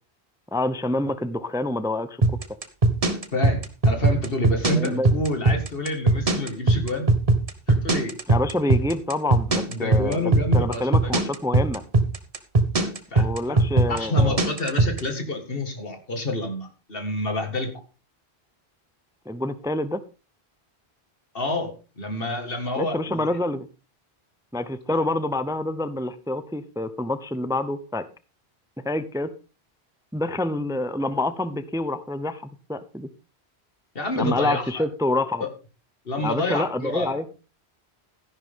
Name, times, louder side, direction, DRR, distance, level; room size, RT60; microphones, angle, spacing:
voice 1, 0.5-2.2 4.7-5.1 8.3-10.2 10.5-11.8 13.1-14.4 19.3-20.0 22.8-23.7 24.5-28.1 28.8-29.3 30.1-33.1 34.2-35.4 36.2-37.3, left 2 dB, 5° right, 13 dB, 0.6 m, -27 dB
sound 1, 2.2-15.0, right 2 dB, 35° right, 1.2 m, -19 dB
voice 2, 3.3-7.1 7.7-8.1 8.7-8.8 9.7-11.1 13.1-13.6 13.9-17.7 21.3-23.3 24.9-25.0 34.0-34.8 35.4-35.5 36.1-37.2, left 1 dB, 60° left, 6 dB, 2.2 m, -28 dB
13.5 x 11.0 x 3.7 m, 0.33 s
omnidirectional pair, 1.1 m